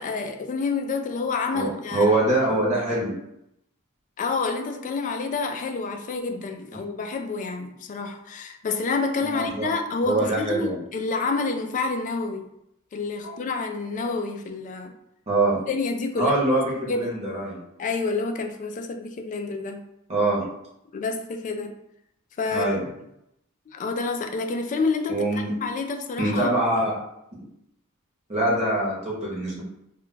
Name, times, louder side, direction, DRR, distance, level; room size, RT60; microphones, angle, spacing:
voice 1, 0.0-2.1 4.2-12.5 12.9-14.9 15.7-16.3 16.8-17.1 17.8-19.8 20.9-21.7 22.4-22.7 23.7-26.5, left 4 dB, 35° left, 6 dB, 0.3 m, -28 dB
voice 2, 1.5-3.1 9.2-9.7 10.0-10.8 13.2-13.3 15.3-15.6 16.2-17.6 20.1-20.4 22.5-22.8 25.1-25.5 26.2-26.9 28.3-29.6, right 2 dB, 30° right, -4 dB, 0.8 m, -24 dB
2.3 x 2.2 x 3.9 m, 0.81 s
head